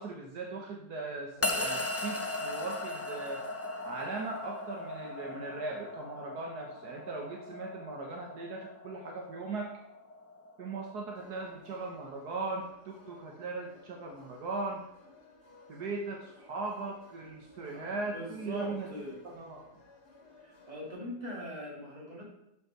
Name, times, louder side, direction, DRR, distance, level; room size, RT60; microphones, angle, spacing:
voice 1, 0.0-3.4 3.8-9.7 10.6-14.8 15.7-18.9 19.2-19.7, right 3 dB, 70° right, 1 dB, 1.6 m, -39 dB
sound 1, 1.4-11.8, left 1 dB, 20° left, 0.4 m, -38 dB
sound 2, 11.1-20.9, left 3 dB, 70° left, 2.3 m, -58 dB
voice 2, 17.7-19.2 20.4-22.4, equal, 25° right, -3 dB, 3.1 m, -41 dB
11.5 x 5.6 x 4.5 m, 0.88 s
omnidirectional pair, 1.8 m